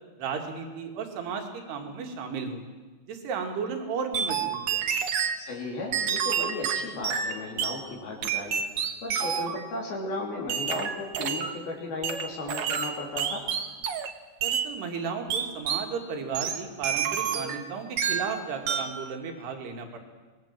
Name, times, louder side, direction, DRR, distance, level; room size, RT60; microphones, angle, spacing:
voice 1, 0.2-2.6 3.1-4.8 14.4-20.0, right 5 dB, 85° right, 3 dB, 4.4 m, -34 dB
sound 1, 4.1-5.4 5.9-7.8 8.2-9.6 10.5-11.6 12.0-14.1 14.4-14.7 15.3-15.9 16.3-17.7 18.0-18.3 18.7-19.0, right 7 dB, 70° right, 1.4 m, -29 dB
voice 2, 5.4-8.6 9.0-13.4, left 2 dB, 70° left, -2 dB, 5.0 m, -35 dB
24.0 x 21.0 x 7.6 m, 1.3 s
omnidirectional pair, 4.6 m